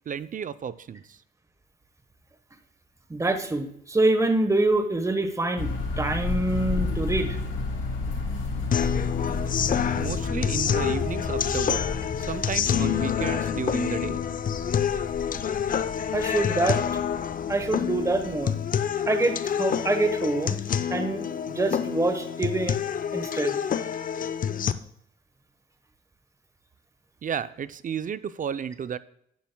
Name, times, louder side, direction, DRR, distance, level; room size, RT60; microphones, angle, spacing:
voice 1, 0.1-1.2 9.9-11.9 12.2-14.2 27.2-29.0, right 8 dB, 40° right, 14 dB, 0.6 m, -33 dB
voice 2, 3.1-5.7 6.0-7.4 16.1-16.8 17.5-18.5 19.1-20.6 20.9-22.8 23.1-23.6, right 2 dB, 15° right, 7 dB, 1.2 m, -25 dB
sound 1, 5.6-18.4, left 3 dB, 75° left, 3.3 m, -32 dB
sound 2, 8.7-24.7, left 8 dB, 45° left, 0.6 m, -27 dB
10.5 x 10.5 x 2.3 m, 0.72 s
cardioid pair, 90°, 20 cm